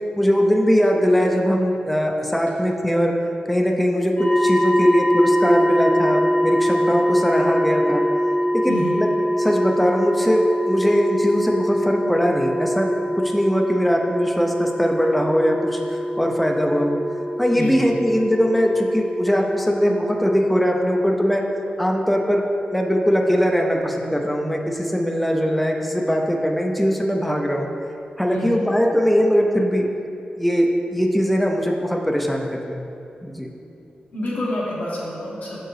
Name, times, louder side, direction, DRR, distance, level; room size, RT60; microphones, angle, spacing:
voice 1, 0.2-3.1 3.5-8.0 8.5-9.1 9.4-12.9 13.2-17.0 17.4-21.5 21.8-22.4 22.7-27.7 28.2-29.9 30.4-32.9 33.2-33.5, equal, ahead, 1 dB, 0.4 m, -20 dB
sound 1, 4.2-21.0, equal, 55° left, 1.2 m, -23 dB
voice 2, 8.6-9.0 17.5-17.8 28.3-28.6 34.1-35.6, left 1 dB, 85° left, -6 dB, 1.4 m, -28 dB
6.5 x 4.6 x 3.2 m, 2.7 s
wide cardioid pair, 100°, 3 cm